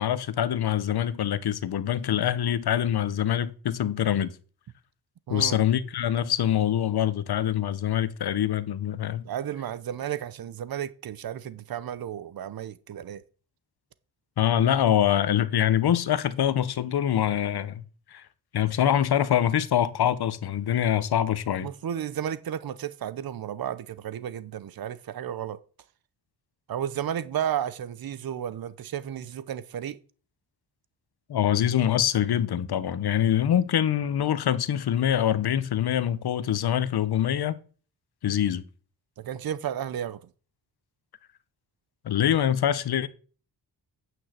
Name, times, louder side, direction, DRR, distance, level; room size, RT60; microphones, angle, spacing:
voice 1, 0.0-4.3 5.3-9.3 14.4-17.8 18.1-18.2 18.5-21.7 31.3-37.5 38.2-38.6 42.0-43.1, left 10 dB, 65° left, 1.0 m, -24 dB
voice 2, 9.2-13.2 21.6-25.6 26.7-30.0 39.2-40.2, right 10 dB, 60° right, 0.8 m, -33 dB
9.2 x 6.3 x 8.0 m
wide cardioid pair, 145°, 41 cm